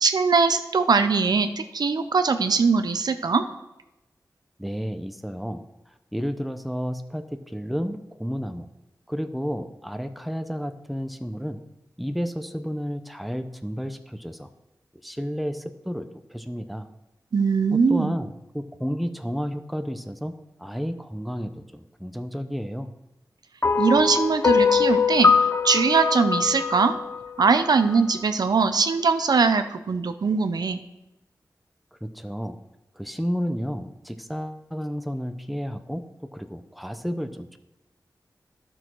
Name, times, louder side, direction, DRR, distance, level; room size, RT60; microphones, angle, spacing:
voice 1, 0.0-3.4 17.3-18.1 23.8-25.3 25.6-26.9 27.4-30.8, right 4 dB, 75° right, 9 dB, 0.6 m, -21 dB
voice 2, 4.6-5.7 6.1-8.7 9.1-11.6 12.0-14.5 15.0-16.9 17.7-22.9 32.0-32.6 33.0-37.6, equal, ahead, 8 dB, 0.7 m, -31 dB
sound 1, 23.6-28.0, left 5 dB, 35° left, 0.4 m, -22 dB
11.5 x 6.2 x 4.6 m, 0.95 s
cardioid pair, 55°, 7 cm